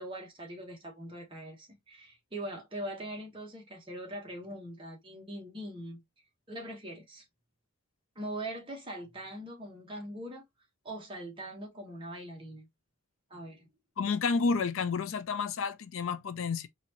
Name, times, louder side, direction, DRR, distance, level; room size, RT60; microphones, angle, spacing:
voice 1, 0.0-6.0 6.5-7.2 8.1-10.4 10.8-12.7 13.3-13.7, right 1 dB, 25° right, 1.2 m, -42 dB
voice 2, 14.0-16.7, left 5 dB, 65° left, 0.4 m, -30 dB
4.2 x 2.6 x 2.9 m
head